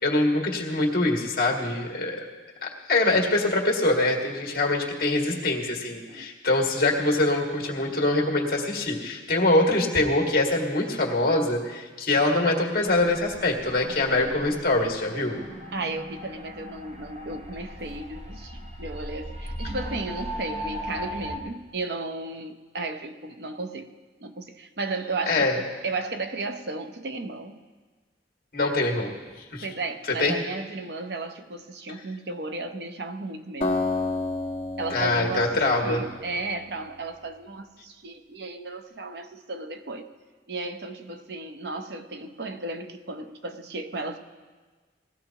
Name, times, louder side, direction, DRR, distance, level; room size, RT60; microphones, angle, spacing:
voice 1, 0.0-2.3 2.6-15.3 25.3-25.6 28.5-29.1 29.5-29.7 30.2-30.4 34.9-36.0, left 2 dB, 55° left, 0 dB, 1.9 m, -24 dB
sound 1, 12.8-21.4, equal, 40° right, 1.0 m, -38 dB
voice 2, 15.7-23.9 24.2-27.6 29.6-33.8 34.8-40.1 40.5-44.2, right 3 dB, 65° right, 7 dB, 0.7 m, -34 dB
Acoustic guitar, 33.6-36.8, left 3 dB, 30° left, 1.2 m, -30 dB
18.5 x 14.5 x 2.9 m, 1.4 s
head